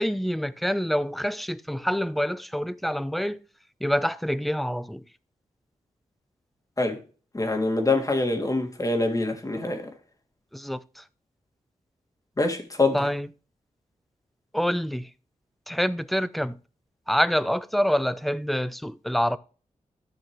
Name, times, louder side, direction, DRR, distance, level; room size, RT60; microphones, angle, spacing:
voice 1, 0.0-3.4 3.8-5.0 10.5-11.0 12.9-13.3 14.5-15.1 15.7-16.6 17.1-19.4, equal, ahead, 0.6 m, -26 dB
voice 2, 7.3-9.9 12.4-13.0, left 2 dB, 25° left, 2.2 m, -25 dB
13.5 x 6.3 x 3.2 m
wide cardioid pair, 85°, 13 cm